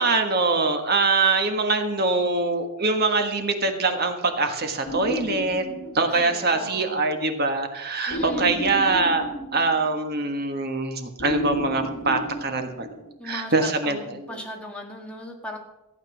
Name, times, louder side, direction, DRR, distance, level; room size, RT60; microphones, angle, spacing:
voice 1, 0.0-5.6 5.9-9.3 9.5-12.9 13.2-14.4, right 3 dB, 45° right, 5 dB, 1.5 m, -23 dB
sound 1, 4.8-6.5 8.1-10.2 11.2-13.3, equal, 80° left, 1.7 m, -33 dB
voice 2, 6.1-7.0 8.1-8.6 13.2-15.6, left 1 dB, 5° left, -1 dB, 2.0 m, -38 dB
15.0 x 8.6 x 6.2 m, 0.97 s
head